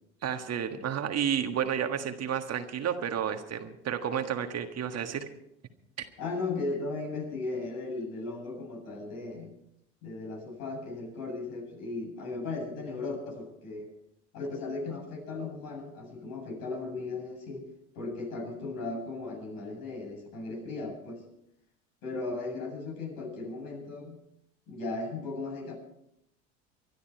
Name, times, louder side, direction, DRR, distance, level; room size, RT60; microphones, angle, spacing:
voice 1, 0.2-5.3, right 8 dB, 45° right, 6 dB, 1.7 m, -31 dB
voice 2, 6.2-9.5 10.0-13.9 14.3-17.7 17.9-21.2 22.0-24.2 24.7-25.8, left 3 dB, 65° left, 1 dB, 7.8 m, -36 dB
24.0 x 11.5 x 4.6 m, 0.78 s
hypercardioid pair, 85°, 37 cm